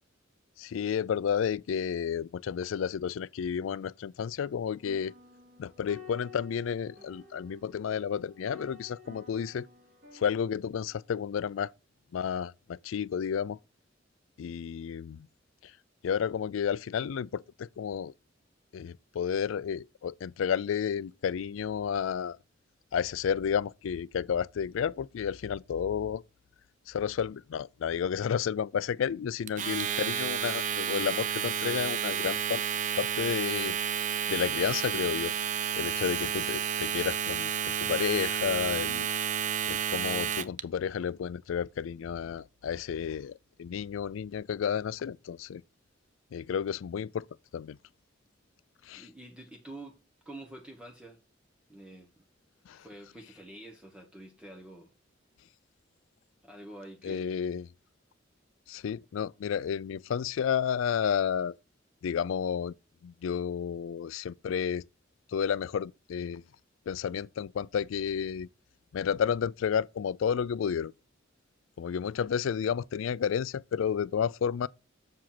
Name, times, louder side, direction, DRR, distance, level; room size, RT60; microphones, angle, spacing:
voice 1, 0.6-5.1 5.6-9.7 10.1-11.7 12.1-13.6 14.4-15.3 15.6-15.7 16.0-18.1 18.7-22.4 22.9-26.2 26.9-32.6 33.0-33.8 34.3-35.3 35.8-39.1 39.7-45.6 46.3-47.2 47.5-47.8 48.8-49.0 52.7-52.9 57.0-57.7 58.7-61.5 62.0-62.7 63.0-64.8 65.3-66.4 66.9-68.5 68.9-70.9 71.8-74.7, left 7 dB, 80° left, 0.3 m, -31 dB
sound 1, 4.6-11.2, left 4 dB, 70° right, 3.7 m, -52 dB
Domestic sounds home sounds, 29.5-40.6, right 8 dB, 40° right, 0.5 m, -31 dB
voice 2, 48.9-50.0 50.2-51.2 51.7-52.2 52.7-54.9 56.4-57.3, right 1 dB, 5° right, 1.1 m, -47 dB
7.1 x 4.9 x 5.9 m
head